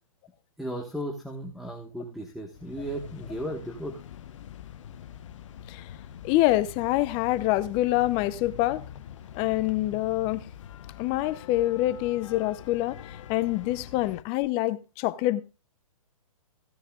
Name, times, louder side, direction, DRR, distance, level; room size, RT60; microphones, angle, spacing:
voice 1, 0.6-4.0, equal, ahead, 1.4 m, -35 dB
sound 1, 2.5-14.2, left 10 dB, 60° left, 1.1 m, -44 dB
voice 2, 6.2-8.8 9.4-10.4 11.0-13.0 13.3-15.4, left 16 dB, 30° left, 0.7 m, -26 dB
16.0 x 9.8 x 2.4 m
hypercardioid pair, 130°, 18 cm